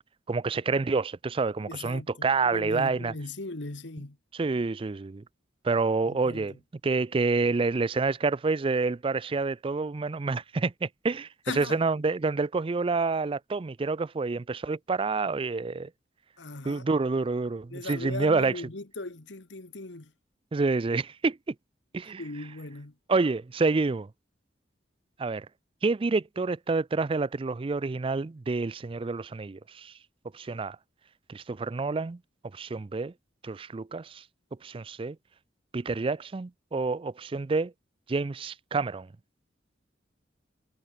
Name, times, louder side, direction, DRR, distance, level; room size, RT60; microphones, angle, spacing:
voice 1, 0.3-3.1 4.3-5.2 5.6-6.5 6.8-15.9 16.6-18.6 20.5-21.5 21.9-22.2 23.1-24.1 25.2-25.5 25.8-29.9 30.3-30.8 31.3-32.2 32.5-33.1 33.4-34.2 34.6-35.2 35.7-37.7 38.1-39.1, right 3 dB, 30° right, 0.4 m, -28 dB
voice 2, 1.6-4.2 6.1-6.5 11.5-11.8 16.4-16.8 17.7-20.1 22.2-22.9, left 2 dB, 70° left, 1.6 m, -38 dB
head